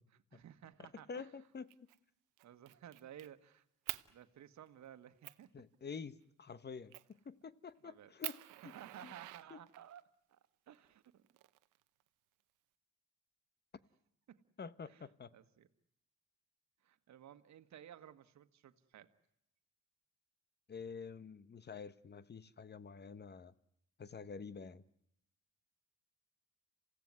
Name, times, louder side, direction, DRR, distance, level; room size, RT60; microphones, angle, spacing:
voice 1, 0.1-1.3 2.4-3.6 4.1-5.5 7.8-8.1 8.6-10.0 10.3-10.4 10.7-11.2 14.3-14.4 14.9-15.7 16.8-19.1, right 10 dB, 65° right, 10 dB, 1.6 m, -56 dB
voice 2, 0.8-1.7 5.5-8.7 9.0-9.1 9.5-9.6 14.6-15.3 20.7-23.5 24.0-24.8, left 5 dB, 35° left, 16 dB, 1.1 m, -48 dB
Fire, 1.7-2.0 2.4-3.3 3.9-4.1 4.7-4.8 5.2-5.4 6.9-7.2 7.7-7.8 8.2-10.0 11.0-12.0, right 17 dB, 90° right, 0.9 m, -46 dB
28.0 x 16.5 x 9.6 m, 0.77 s
cardioid pair, 90°, 30 cm